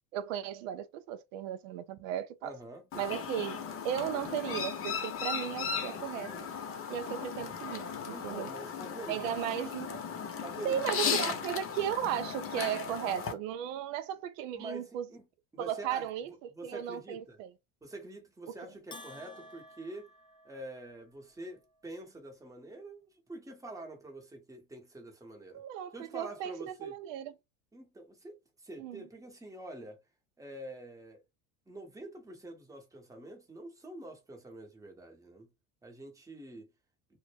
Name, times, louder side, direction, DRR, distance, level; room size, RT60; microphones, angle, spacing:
voice 1, 0.1-2.5 2.9-6.3 6.9-8.5 9.1-10.0 10.6-15.1 15.6-17.5 18.5-18.6 25.5-27.3 28.8-29.1, right 10 dB, 80° right, 0.5 m, -36 dB
voice 2, 2.4-2.8 8.1-9.3 10.4-10.8 11.3-11.4 14.5-15.2 15.5-17.4 17.8-20.1 20.4-25.6 25.9-26.9 27.7-30.0 30.4-31.2 31.7-35.5 35.8-36.7, right 1 dB, 10° right, 0.9 m, -46 dB
Chirp tweet, 2.9-13.3, left 6 dB, 35° left, 0.7 m, -36 dB
Bell, 18.9-21.1, left 1 dB, 15° left, 0.3 m, -51 dB
2.1 x 2.1 x 3.2 m
supercardioid pair, 100°, 38 cm